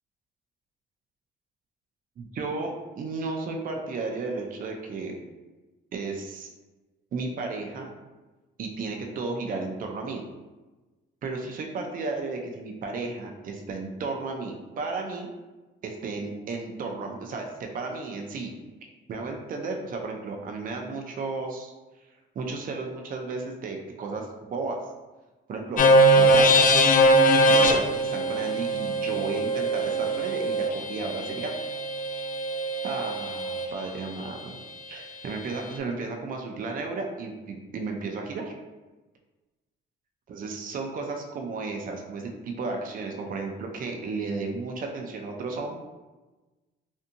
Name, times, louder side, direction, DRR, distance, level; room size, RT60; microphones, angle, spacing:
voice 1, 2.2-5.2 5.9-6.5 7.1-7.9 8.6-10.2 11.2-15.3 15.8-18.5 19.1-21.7 22.4-24.8 25.5-25.9 26.1-26.6 27.4-31.5 32.8-34.5 34.9-38.5 40.3-45.7, right 3 dB, 45° right, 2 dB, 0.4 m, -33 dB
sound 1, 25.8-33.7, right 1 dB, 45° left, 0.4 m, -21 dB
2.6 x 2.6 x 2.5 m, 1.2 s
cardioid pair, 90°, 20 cm